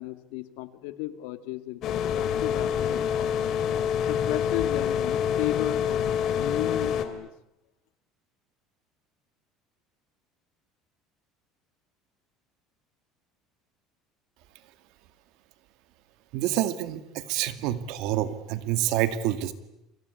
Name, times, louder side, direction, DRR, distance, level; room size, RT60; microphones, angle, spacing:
voice 1, 0.0-3.4 4.1-6.0 6.3-7.3, left 15 dB, 80° left, 11 dB, 2.1 m, -34 dB
sound 1, 1.8-7.1, left 8 dB, 45° left, 2.8 m, -26 dB
voice 2, 16.3-19.5, right 12 dB, 60° right, 12 dB, 2.2 m, -27 dB
30.0 x 23.5 x 8.5 m, 0.84 s
cardioid pair, 160°, 0 cm